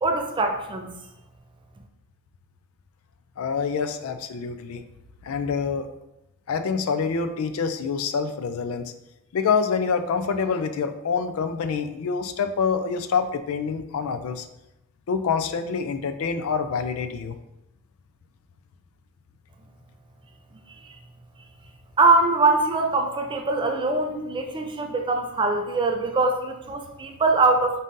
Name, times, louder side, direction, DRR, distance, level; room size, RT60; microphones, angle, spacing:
voice 1, 0.0-0.9 22.0-27.8, right 3 dB, 25° right, 4 dB, 0.4 m, -22 dB
voice 2, 3.4-4.8 5.2-5.9 6.5-8.9 9.3-14.4 15.1-17.4, left 5 dB, 75° left, 9 dB, 0.4 m, -26 dB
4.1 x 3.6 x 2.6 m, 0.90 s
head